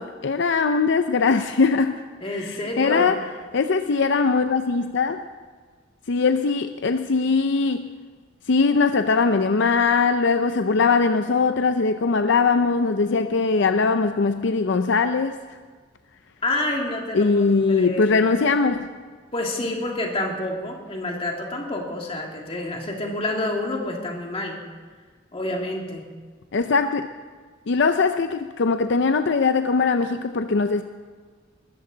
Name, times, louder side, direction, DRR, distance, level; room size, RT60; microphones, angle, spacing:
voice 1, 0.0-2.0 2.3-3.1 3.5-5.2 6.1-7.9 8.5-15.4 17.1-18.9 26.5-27.1 27.7-30.8, left 4 dB, 65° left, 8 dB, 0.5 m, -21 dB
voice 2, 2.2-3.1 16.4-17.4 17.7-18.2 19.3-24.7 25.3-26.1, left 2 dB, 30° left, 1 dB, 2.3 m, -28 dB
21.0 x 13.5 x 3.9 m, 1.5 s
head